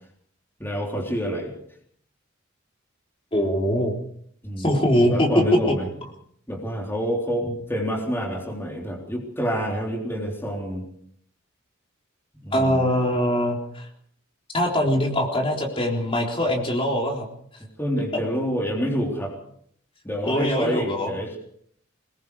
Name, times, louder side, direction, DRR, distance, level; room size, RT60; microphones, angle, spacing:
voice 1, 0.6-1.5 4.4-5.9 6.5-10.8 12.4-12.9 17.6-19.3 20.0-21.4, equal, 10° left, 0 dB, 3.6 m, -28 dB
voice 2, 3.3-3.9 4.6-5.3 12.5-13.9 14.5-17.3 20.2-21.1, equal, 25° left, 0 dB, 3.8 m, -22 dB
24.5 x 21.5 x 4.9 m, 0.65 s
head